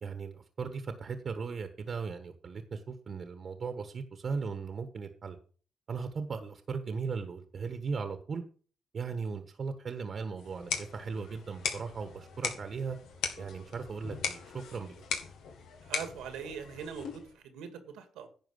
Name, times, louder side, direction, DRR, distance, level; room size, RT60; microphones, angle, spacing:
voice 1, 0.0-5.4 5.9-8.4 8.9-13.0 13.4-15.0, right 5 dB, 55° right, 8 dB, 1.3 m, -37 dB
sound 1, 10.4-17.4, left 6 dB, 85° left, 2.0 m, -39 dB
voice 2, 15.9-18.3, right 7 dB, 90° right, 8 dB, 2.0 m, -42 dB
10.5 x 4.7 x 8.0 m, 0.42 s
cardioid pair, 70°, 0 cm